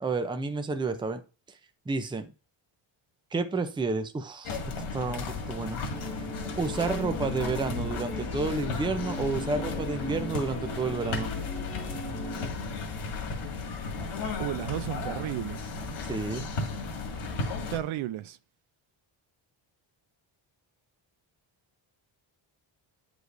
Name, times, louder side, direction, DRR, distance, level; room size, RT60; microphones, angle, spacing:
voice 1, 0.0-1.2 1.9-2.3 3.3-4.6 4.9-6.1 6.6-11.3 16.1-16.4, right 3 dB, 10° right, 0.5 m, -30 dB
sound 1, 4.4-17.8, left 3 dB, 85° left, 2.0 m, -34 dB
sound 2, 5.9-12.5, left 1 dB, 25° left, 1.5 m, -39 dB
voice 2, 14.4-15.7 17.7-18.4, right 13 dB, 75° right, 0.6 m, -33 dB
9.4 x 5.1 x 2.5 m
wide cardioid pair, 165°, 49 cm